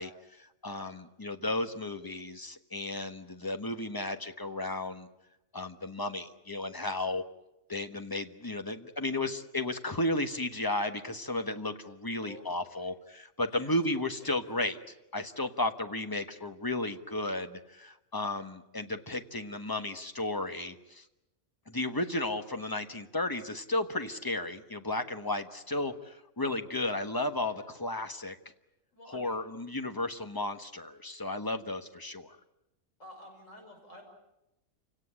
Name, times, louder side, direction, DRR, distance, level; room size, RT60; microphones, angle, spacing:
voice 1, 0.0-5.1 5.5-7.2 7.7-21.0 21.7-28.4 29.1-32.4, left 2 dB, 15° left, 8 dB, 1.1 m, -34 dB
voice 2, 12.2-12.9 13.5-14.6 21.9-22.1 27.5-28.0 28.9-29.5 33.0-34.0, left 1 dB, 60° left, 1 dB, 6.2 m, -53 dB
28.0 x 18.0 x 9.9 m, 0.93 s
omnidirectional pair, 1.5 m